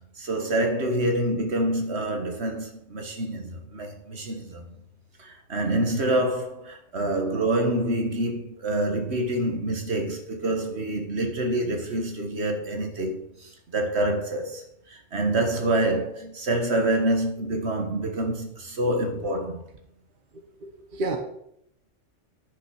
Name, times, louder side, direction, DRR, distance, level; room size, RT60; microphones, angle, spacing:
voice 1, 0.2-4.6 5.2-19.6, right 1 dB, 60° right, 1.7 m, -27 dB
voice 2, 20.3-21.2, right 2 dB, 45° right, 1.3 m, -33 dB
10.0 x 5.7 x 6.3 m
omnidirectional pair, 1.2 m